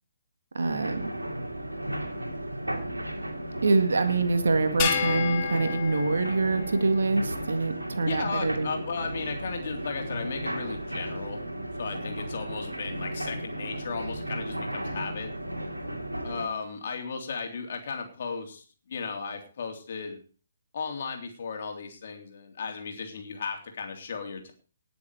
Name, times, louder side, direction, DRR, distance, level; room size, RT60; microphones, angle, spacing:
voice 1, 0.5-1.1 3.6-8.7, right 3 dB, 65° right, 8 dB, 1.9 m, -25 dB
sound 1, 0.6-16.4, right 1 dB, 85° right, 2.6 m, -35 dB
sound 2, 4.8-7.4, left 8 dB, 30° left, 1.9 m, -31 dB
voice 2, 8.0-11.4 11.8-15.3 16.2-20.2 20.7-24.5, left 5 dB, 50° left, 3 dB, 3.3 m, -35 dB
19.0 x 7.1 x 4.8 m, 0.39 s
figure-of-eight pair, 135°, 0 cm